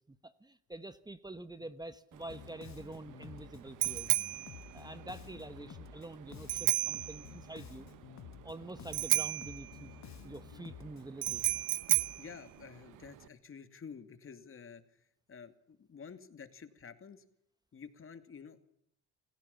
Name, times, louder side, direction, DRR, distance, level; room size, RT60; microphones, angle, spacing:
voice 1, 0.1-4.1 4.7-7.9 8.4-9.9 10.2-11.4, right 2 dB, 15° right, 12 dB, 1.2 m, -46 dB
Bicycle bell, 2.1-13.3, right 16 dB, 85° right, 1.2 m, -35 dB
Bass guitar, 2.3-12.2, left 11 dB, 65° left, 1.3 m, -51 dB
voice 2, 12.2-14.8 15.3-17.2 17.7-18.6, left 6 dB, 45° left, 9 dB, 2.6 m, -50 dB
28.0 x 16.0 x 7.2 m, 0.75 s
cardioid pair, 90°, 30 cm